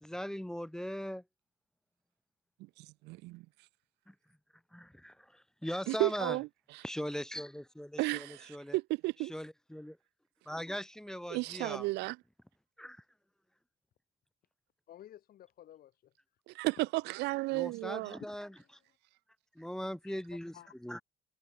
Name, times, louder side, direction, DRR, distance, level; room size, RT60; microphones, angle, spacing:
voice 1, 0.0-1.2 4.1-4.2 4.7-6.4 6.8-8.8 9.2-10.0 10.5-11.9 12.8-13.0 17.5-18.5 19.5-20.5 20.8-21.0, equal, 5° left, 1.2 m, -40 dB
voice 2, 2.8-3.4 5.9-6.5 6.7-6.8 8.0-9.3 11.3-12.2 16.5-18.2, right 22 dB, 90° right, 0.8 m, -33 dB
voice 3, 14.9-16.1 18.2-18.7 20.0-20.7, left 12 dB, 60° left, 4.5 m, -54 dB
cardioid pair, 110°, 17 cm